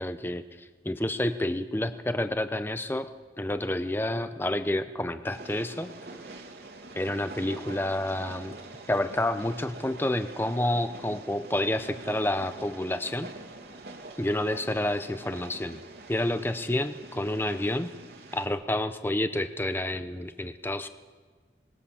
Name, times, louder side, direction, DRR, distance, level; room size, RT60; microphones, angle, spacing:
voice 1, 0.0-3.1 3.4-5.9 7.0-8.6 8.9-13.3 14.2-15.8 16.1-17.9 18.3-20.9, left 1 dB, 10° left, 10 dB, 0.7 m, -29 dB
Train, 5.3-18.5, right 2 dB, 75° right, 3.0 m, -45 dB
25.5 x 20.0 x 7.2 m, 1.5 s
head